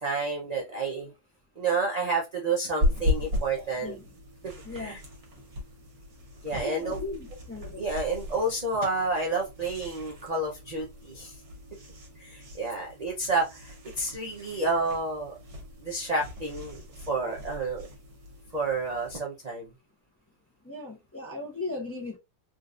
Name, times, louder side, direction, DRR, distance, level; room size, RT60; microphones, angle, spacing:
voice 1, 0.0-1.1 1.6-4.0 4.4-4.5 4.8-5.0 6.4-7.0 7.8-11.4 12.2-15.3 15.8-17.9 18.5-19.7, right 3 dB, 50° right, 0.5 m, -30 dB
sound 1, 2.8-19.2, left 1 dB, 65° right, 1.5 m, -36 dB
voice 2, 3.8-4.1 4.6-4.9 6.6-7.2 7.5-7.8 20.6-22.2, left 3 dB, 15° left, 0.5 m, -37 dB
3.7 x 2.5 x 2.4 m
omnidirectional pair, 1.7 m